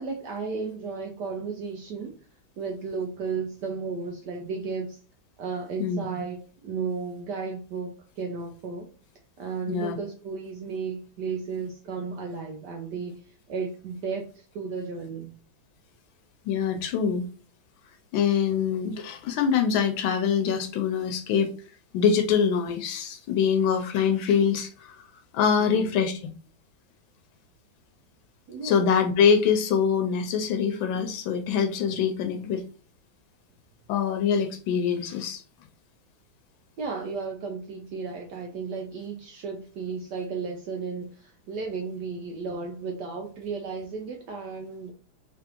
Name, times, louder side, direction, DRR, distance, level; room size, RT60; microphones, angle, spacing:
voice 1, 0.0-2.2 2.6-5.0 5.4-8.9 9.4-15.3 25.6-25.9 28.5-29.0 36.8-44.9, right 5 dB, 70° right, 2 dB, 1.1 m, -34 dB
voice 2, 9.7-10.0 16.5-17.2 18.1-21.5 21.9-25.0 25.3-26.2 28.6-32.6 33.9-35.4, left 7 dB, 80° left, 6 dB, 1.3 m, -24 dB
3.7 x 3.4 x 2.9 m, 0.40 s
omnidirectional pair, 2.2 m